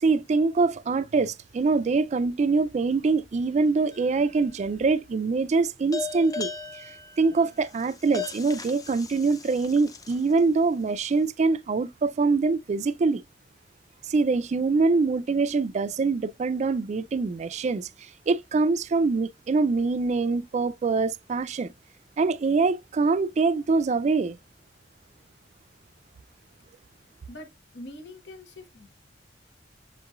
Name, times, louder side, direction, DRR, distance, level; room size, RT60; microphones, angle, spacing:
voice 1, 0.0-6.5 7.2-13.2 14.1-21.7 22.2-24.4, right 4 dB, 40° right, 0.3 m, -24 dB
sound 1, 3.9-4.5 5.9-10.4, left 5 dB, 20° left, 0.5 m, -37 dB
voice 2, 27.3-28.9, left 1 dB, 70° left, 1.0 m, -44 dB
7.2 x 2.9 x 2.3 m
head